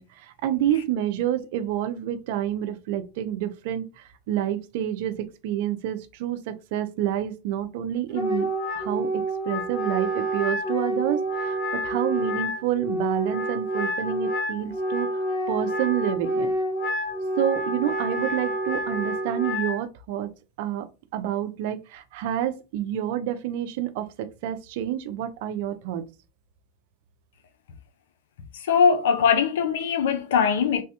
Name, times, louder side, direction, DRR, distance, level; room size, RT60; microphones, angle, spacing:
voice 1, 0.0-8.5 8.7-16.5 17.4-20.3 20.6-20.9 21.1-26.0, right 11 dB, 65° right, 0.4 m, -28 dB
Wind instrument woodwind instrument, 8.1-19.8, right 1 dB, 50° left, 0.9 m, -28 dB
voice 2, 28.6-30.8, left 6 dB, 80° left, 0.5 m, -21 dB
3.3 x 2.2 x 2.8 m
hypercardioid pair, 115°, 0 cm